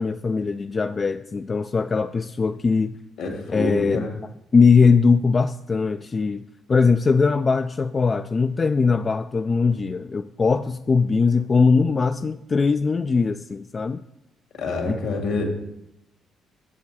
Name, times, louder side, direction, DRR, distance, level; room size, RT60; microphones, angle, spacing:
voice 1, 0.0-2.9 3.5-4.0 4.5-6.4 6.7-14.0 14.9-15.0, left 4 dB, 40° left, 0.3 m, -20 dB
voice 2, 3.2-4.1 14.6-15.4, left 3 dB, 75° left, 2.3 m, -27 dB
7.4 x 7.4 x 4.2 m
hypercardioid pair, 50°, 0 cm